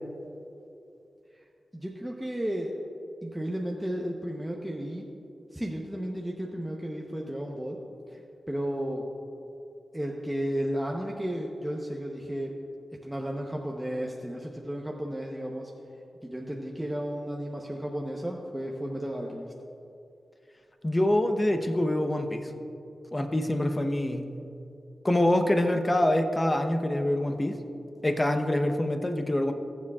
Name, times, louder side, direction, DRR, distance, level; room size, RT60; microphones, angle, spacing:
voice 1, 1.7-2.7 3.2-5.0 5.5-7.8 8.1-8.2 8.5-9.0 9.9-12.5 13.0-15.7 16.2-19.5, equal, 5° right, -1 dB, 0.9 m, -33 dB
voice 2, 20.8-22.5 23.1-24.3 25.0-27.6 28.0-29.5, left 1 dB, 25° left, 6 dB, 0.9 m, -25 dB
21.0 x 7.3 x 2.4 m, 2.7 s
cardioid pair, 55°, 0 cm